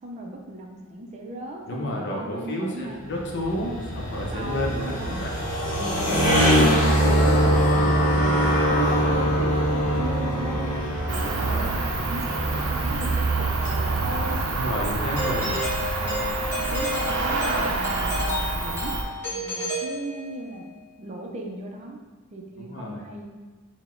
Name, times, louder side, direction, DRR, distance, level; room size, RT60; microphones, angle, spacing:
voice 1, 0.0-3.3 4.3-5.2 6.3-7.8 8.2-14.4 14.8-15.6 16.0-16.3 16.7-18.9 19.3-20.6 21.0-22.0 22.3-23.3, right 2 dB, 30° right, 1 dB, 0.4 m, -37 dB
voice 2, 1.7-5.3 11.2-11.8 14.5-15.5 22.6-23.0, left 1 dB, 55° left, -1 dB, 0.7 m, -31 dB
sound 1, 3.0-14.6, equal, 40° left, 1.1 m, -23 dB
Cricket, 11.1-19.0, right 3 dB, 90° right, 0.5 m, -27 dB
Doorbell, 15.2-20.6, left 1 dB, 10° left, 1.0 m, -31 dB
4.0 x 2.1 x 4.4 m, 1.3 s
head